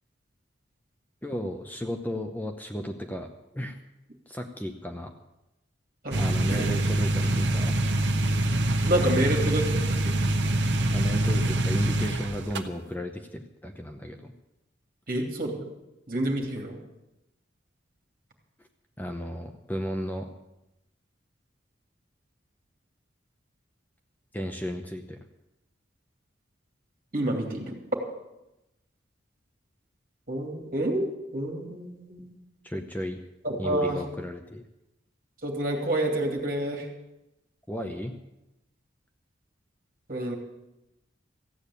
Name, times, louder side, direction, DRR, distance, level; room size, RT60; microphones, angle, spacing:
voice 1, 1.2-3.3 3.5-3.8 4.3-5.1 6.2-7.8 9.0-9.3 10.9-14.3 19.0-20.3 24.3-25.2 32.6-33.2 33.6-34.6 37.7-38.2, equal, 10° left, 4 dB, 0.8 m, -34 dB
sound 1, 6.1-12.6, right 1 dB, 70° right, 1.1 m, -25 dB
voice 2, 8.8-9.6 10.0-10.1 15.1-15.6 16.1-16.8 27.1-27.7 30.3-31.1 31.3-32.4 33.4-34.0 35.4-36.9 40.1-40.4, right 1 dB, 50° right, 1 dB, 2.7 m, -28 dB
15.0 x 8.8 x 8.4 m, 0.92 s
head